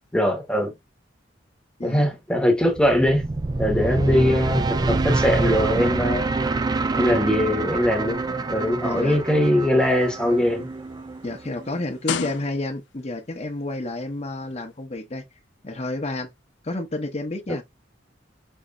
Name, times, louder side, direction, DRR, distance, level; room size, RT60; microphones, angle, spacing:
voice 1, 0.1-0.7 1.8-3.2 3.6-6.2 7.0-8.2 8.5-10.7, equal, 5° left, 1.0 m, -21 dB
sound 1, 2.7-11.8, right 3 dB, 20° right, 0.4 m, -26 dB
voice 2, 8.8-9.2 11.2-15.2 15.6-16.3 16.6-17.6, left 2 dB, 35° left, 0.9 m, -30 dB
sound 2, 9.9-13.0 13.9-14.0, left 7 dB, 70° left, 0.5 m, -33 dB
5.3 x 2.8 x 2.3 m
head